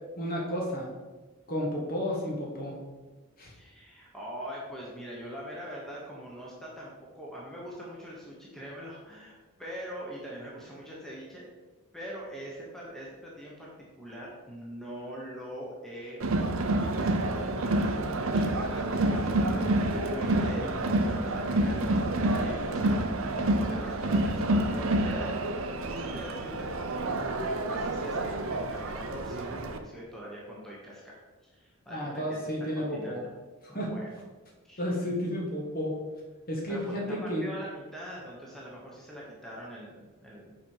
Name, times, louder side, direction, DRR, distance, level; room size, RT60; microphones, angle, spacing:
voice 1, 0.2-0.9 1.5-2.8 3.4-3.5 31.9-33.2 33.6-33.9 34.8-36.0 36.5-37.5, equal, 40° left, -3 dB, 1.7 m, -32 dB
voice 2, 3.5-11.5 11.9-13.7 14.0-16.2 16.6-17.9 18.2-26.7 27.2-31.2 31.5-32.1 32.7-33.2 33.7-34.1 34.6-34.8 36.7-40.6, equal, ahead, -5 dB, 1.2 m, -43 dB
Crowd, 16.2-29.8, right 1 dB, 65° right, 0.7 m, -28 dB
7.0 x 5.2 x 4.7 m, 1.3 s
head